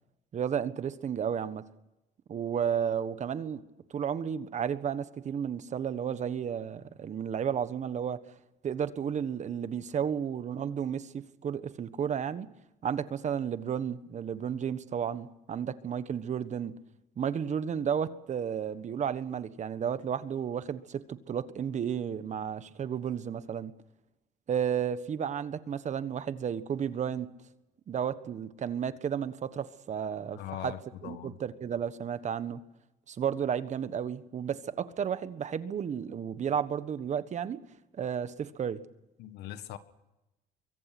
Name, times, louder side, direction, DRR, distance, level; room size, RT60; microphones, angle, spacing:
voice 1, 0.3-1.6 2.3-3.6 3.9-8.2 8.6-12.5 12.8-16.7 17.2-23.7 24.5-27.3 27.9-30.7 31.0-32.6 33.1-37.6 37.9-38.8, right 8 dB, 45° right, 13 dB, 1.4 m, -32 dB
voice 2, 30.3-31.4 39.2-39.8, left 11 dB, 80° left, 11 dB, 1.6 m, -41 dB
24.5 x 23.5 x 6.1 m, 0.96 s
cardioid pair, 110°, 17 cm